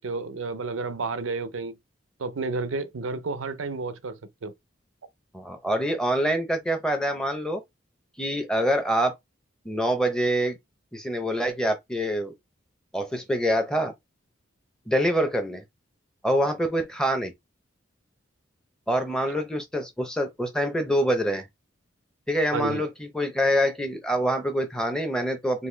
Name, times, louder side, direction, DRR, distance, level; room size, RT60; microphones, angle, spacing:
voice 1, 0.0-1.8 2.2-4.5 19.3-19.4 22.5-22.8, right 3 dB, 90° right, 0.6 m, -31 dB
voice 2, 5.3-7.6 8.2-9.1 9.6-10.6 10.9-12.3 12.9-13.9 14.9-15.6 16.2-17.3 18.9-21.4 22.3-25.7, equal, 5° left, 0.7 m, -25 dB
4.1 x 2.5 x 3.3 m
head